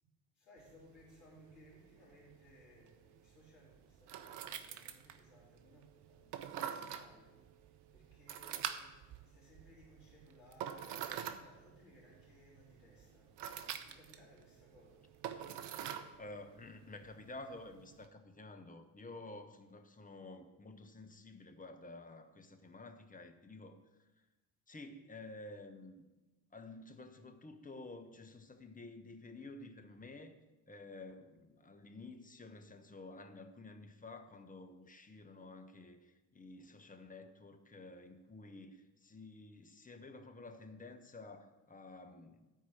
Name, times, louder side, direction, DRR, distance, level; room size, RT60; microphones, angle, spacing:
voice 1, 0.3-13.4 13.6-15.2, left 1 dB, 75° left, -7 dB, 4.1 m, -63 dB
sound 1, 0.6-18.1, right 9 dB, 55° right, 0.9 m, -47 dB
voice 2, 16.2-24.2 24.7-26.1 26.5-30.4 30.7-42.5, left 2 dB, 15° left, 5 dB, 1.2 m, -51 dB
13.0 x 4.7 x 7.5 m, 1.1 s
figure-of-eight pair, 55°, 50 cm